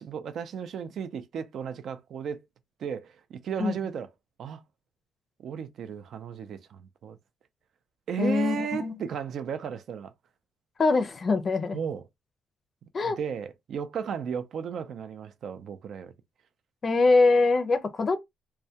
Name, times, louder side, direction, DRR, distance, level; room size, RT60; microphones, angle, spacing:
voice 1, 0.0-2.4 2.8-4.1 4.4-4.6 5.4-7.2 8.1-10.1 11.7-12.1 13.0-16.1, right 7 dB, 65° right, 0.4 m, -34 dB
voice 2, 8.2-9.0 10.8-11.8 12.9-13.2 16.8-18.2, left 3 dB, 40° left, 0.4 m, -23 dB
2.2 x 2.1 x 2.7 m
cardioid pair, 90°, 0 cm